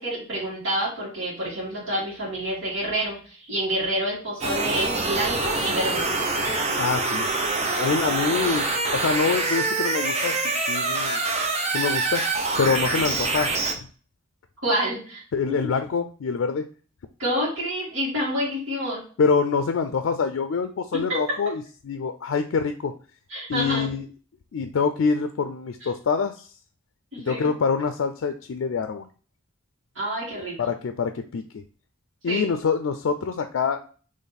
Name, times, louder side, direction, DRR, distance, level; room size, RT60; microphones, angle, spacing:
voice 1, 0.0-6.0 14.6-15.2 15.5-15.6 17.2-19.0 20.9-21.2 23.3-23.9 25.8-25.9 27.1-27.5 30.0-30.6 32.3-32.5, equal, 75° right, -6 dB, 1.9 m, -28 dB
sound 1, 4.4-13.7, right 3 dB, 35° right, 0.7 m, -25 dB
voice 2, 6.8-7.3 7.7-8.7 8.9-11.2 11.7-12.2 12.6-13.5 13.8-13.9 15.3-16.6 19.2-22.9 23.5-24.1 24.5-26.5 27.2-29.1 30.6-31.4 32.2-33.8, left 5 dB, 80° left, 8 dB, 0.4 m, -25 dB
4.0 x 3.1 x 4.1 m, 0.40 s
head